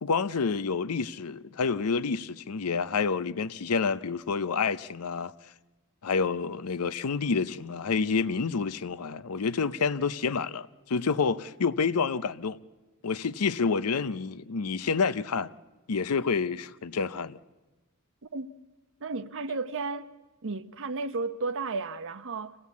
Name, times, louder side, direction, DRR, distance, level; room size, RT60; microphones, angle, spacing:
voice 1, 0.0-5.3 6.0-12.6 13.0-15.5 15.9-17.4, left 5 dB, 85° left, 0.6 m, -28 dB
voice 2, 19.0-20.1 20.4-22.6, right 3 dB, 60° right, 0.8 m, -33 dB
26.0 x 16.5 x 8.3 m
head